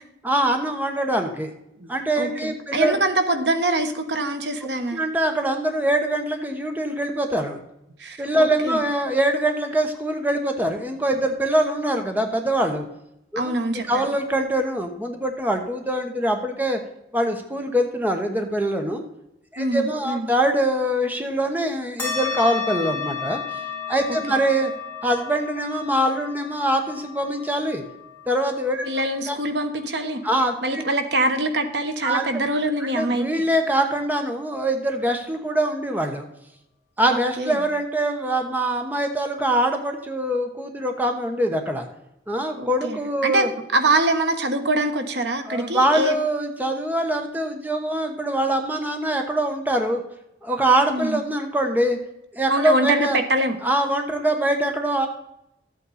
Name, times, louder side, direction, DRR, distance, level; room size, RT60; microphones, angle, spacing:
voice 1, 0.2-1.5 1.9-3.0 4.9-7.6 8.2-12.8 13.3-13.5 13.9-16.8 17.1-19.0 19.5-23.4 23.9-24.7 25.0-27.8 28.3-28.8 29.3-29.4 30.2-30.8 32.0-32.4 32.9-36.2 37.0-41.9 42.3-43.5 45.5-50.0 50.4-52.0 52.3-53.2 53.6-55.1, right 1 dB, 10° right, 4 dB, 1.1 m, -23 dB
voice 2, 2.2-5.0 8.0-8.9 13.3-14.0 19.6-20.3 24.3-24.4 28.8-30.2 30.6-33.4 37.1-37.7 42.6-46.2 50.9-51.2 52.5-53.6, right 1 dB, 75° right, 7 dB, 1.3 m, -24 dB
sound 1, 22.0-30.9, left 6 dB, 10° left, 4.1 m, -34 dB
13.5 x 8.4 x 4.2 m, 0.85 s
head